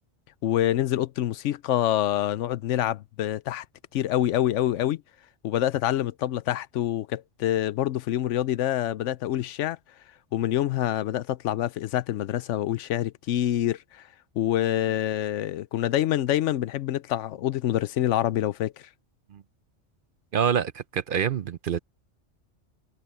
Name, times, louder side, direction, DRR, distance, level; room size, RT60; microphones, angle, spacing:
voice 1, 0.4-3.6 3.9-5.0 5.4-9.8 10.3-14.1 14.4-18.9, left 12 dB, 80° left, 0.9 m, -26 dB
voice 2, 20.3-21.8, right 8 dB, 55° right, 0.7 m, -26 dB
omnidirectional pair, 1.2 m